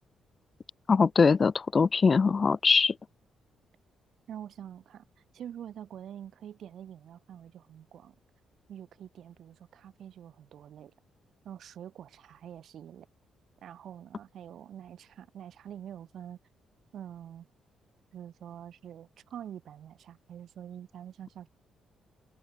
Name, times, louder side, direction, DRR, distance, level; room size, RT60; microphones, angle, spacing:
voice 1, 0.9-2.9, left 5 dB, 30° left, 1.3 m, -22 dB
voice 2, 4.3-5.0 5.3-8.1 8.7-10.9 11.4-13.1 13.6-16.4 16.9-17.5 18.1-21.5, right 10 dB, 65° right, 4.7 m, -45 dB
cardioid pair, 130°, 0 cm